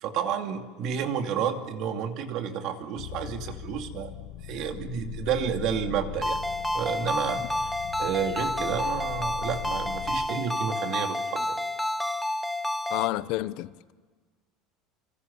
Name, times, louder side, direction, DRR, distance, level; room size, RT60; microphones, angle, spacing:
voice 1, 0.0-4.1 4.4-6.4 6.7-7.7 8.0-11.7, right 8 dB, 45° right, 2.5 m, -31 dB
sound 1, 3.0-10.3, left 11 dB, 90° left, 2.2 m, -40 dB
Ringtone, 6.2-13.1, left 1 dB, ahead, 1.0 m, -30 dB
voice 2, 12.9-13.9, left 16 dB, 55° left, 0.9 m, -30 dB
28.0 x 26.5 x 7.1 m
cardioid pair, 170°, 0 cm